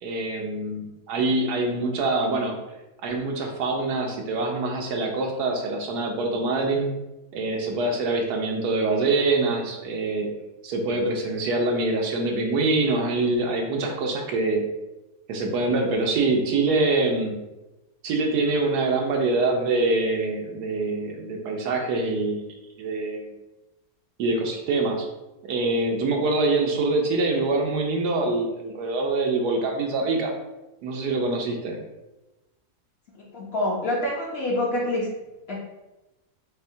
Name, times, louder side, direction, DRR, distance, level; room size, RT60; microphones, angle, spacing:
voice 1, 0.0-2.5 3.0-6.9 7.3-10.3 10.6-14.6 15.3-17.3 18.0-22.5 22.8-23.3 24.2-25.1 25.4-30.3 30.8-31.8, right 2 dB, 90° right, 2 dB, 1.3 m, -24 dB
voice 2, 33.3-35.1 35.5-35.7, left 1 dB, 50° left, -3 dB, 0.8 m, -26 dB
6.4 x 2.1 x 2.7 m, 1.0 s
omnidirectional pair, 1.7 m